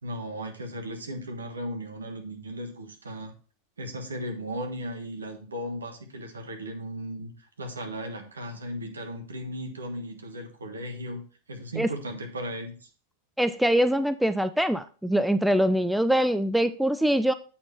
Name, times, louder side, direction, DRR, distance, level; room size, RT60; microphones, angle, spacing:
voice 1, 0.0-3.3 3.8-11.2 11.5-12.9, equal, 75° right, 4 dB, 1.3 m, -36 dB
voice 2, 13.4-17.3, equal, ahead, 12 dB, 0.3 m, -23 dB
8.2 x 4.3 x 4.2 m, 0.39 s
figure-of-eight pair, 90°, 0 cm